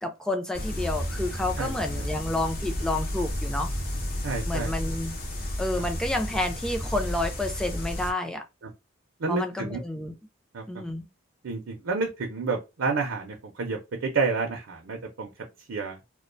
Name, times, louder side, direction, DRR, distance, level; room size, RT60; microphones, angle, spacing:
voice 1, 0.0-3.7 4.4-5.1 5.6-8.4 9.3-10.1 10.7-11.1, left 1 dB, 5° left, 0.3 m, -30 dB
sound 1, 0.5-8.1, left 1 dB, 45° left, 0.6 m, -32 dB
voice 2, 1.6-2.1 4.2-4.7 8.6-8.7 9.2-9.8 10.5-10.6 11.4-15.3 15.7-16.0, right 4 dB, 70° right, 0.5 m, -30 dB
2.4 x 2.1 x 2.4 m
head